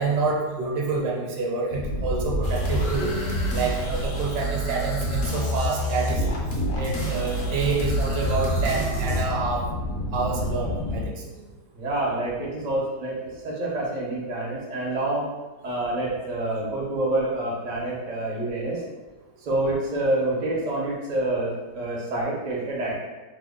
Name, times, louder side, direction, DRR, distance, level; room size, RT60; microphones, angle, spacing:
voice 1, 0.0-3.1 3.5-6.3 6.7-9.6 10.1-11.4, right 4 dB, 75° right, 0 dB, 1.1 m, -27 dB
sound 1, 1.7-11.1, left 1 dB, 85° left, 0.5 m, -32 dB
sound 2, 2.4-9.2, equal, 60° left, 0.9 m, -27 dB
voice 2, 11.7-15.3 15.6-18.8 19.4-23.0, right 1 dB, 55° right, -4 dB, 0.5 m, -27 dB
2.9 x 2.1 x 3.5 m, 1.2 s
omnidirectional pair, 1.8 m